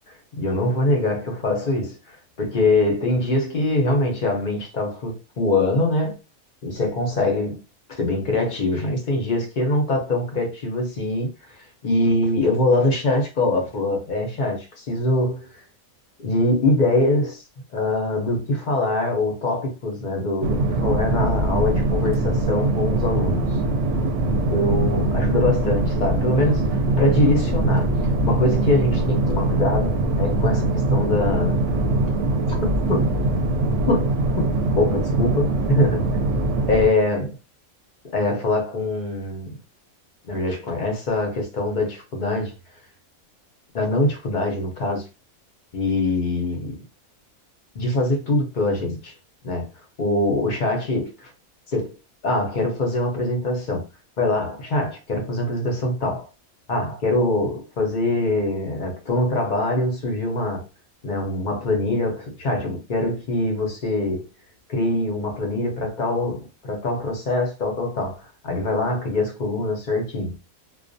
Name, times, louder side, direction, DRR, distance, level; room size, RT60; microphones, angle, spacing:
voice 1, 0.4-6.2 6.6-7.6 7.9-15.6 16.2-17.4 17.7-23.5 24.2-27.9 28.2-31.6 32.5-32.6 32.9-33.1 33.9-34.1 34.4-36.2 36.7-37.4 38.1-39.5 40.3-42.5 43.7-45.0 45.7-46.8 47.7-49.1 49.4-49.7 50.0-51.3 51.7-52.0 52.2-53.8 54.2-56.3 56.7-60.6 61.0-64.2 64.7-70.3, left 2 dB, 50° left, 0.5 m, -23 dB
sound 1, 20.4-36.9, right 2 dB, 70° right, 0.8 m, -22 dB
2.3 x 2.2 x 2.5 m
omnidirectional pair, 1.5 m